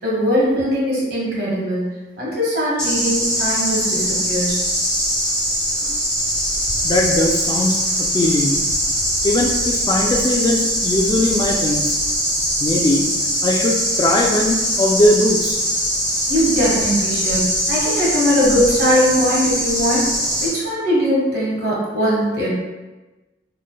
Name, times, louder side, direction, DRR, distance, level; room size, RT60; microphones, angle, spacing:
voice 1, 0.0-1.8 2.2-4.7 16.3-20.1 20.4-22.5, equal, 60° right, -6 dB, 1.5 m, -20 dB
sound 1, 2.8-20.5, equal, 5° left, 1.3 m, -21 dB
voice 2, 6.8-7.8 8.1-8.6 9.2-11.8 12.6-13.1 13.4-15.6, left 1 dB, 25° left, 1 dB, 0.3 m, -19 dB
4.1 x 3.2 x 2.2 m, 1.2 s
head